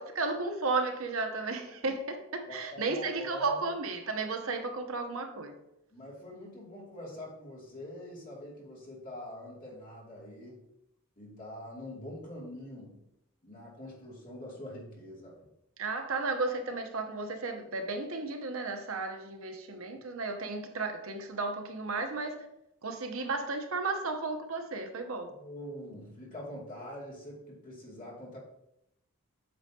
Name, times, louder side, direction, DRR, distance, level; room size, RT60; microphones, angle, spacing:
voice 1, 0.0-5.6 15.8-22.5 22.8-25.3, right 3 dB, 65° right, 6 dB, 0.9 m, -34 dB
voice 2, 2.5-3.6 5.9-10.6 11.2-13.0 13.4-15.4 25.3-28.4, left 1 dB, 40° left, -5 dB, 2.5 m, -44 dB
8.7 x 6.2 x 2.8 m, 0.83 s
head